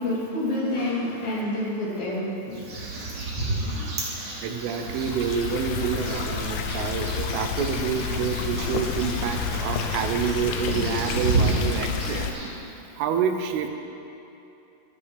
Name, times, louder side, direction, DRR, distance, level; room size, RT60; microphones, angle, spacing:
voice 1, 0.0-2.6 3.6-3.9, left 1 dB, 55° left, -7 dB, 4.3 m, -28 dB
sound 1, 2.5-12.5, right 2 dB, 40° right, 2.8 m, -31 dB
voice 2, 4.4-12.3 13.0-13.7, right 7 dB, 90° right, 5 dB, 3.5 m, -28 dB
sound 2, 4.9-12.3, left 7 dB, 90° left, 3.4 m, -30 dB
25.0 x 9.9 x 3.6 m, 2.9 s
omnidirectional pair, 5.5 m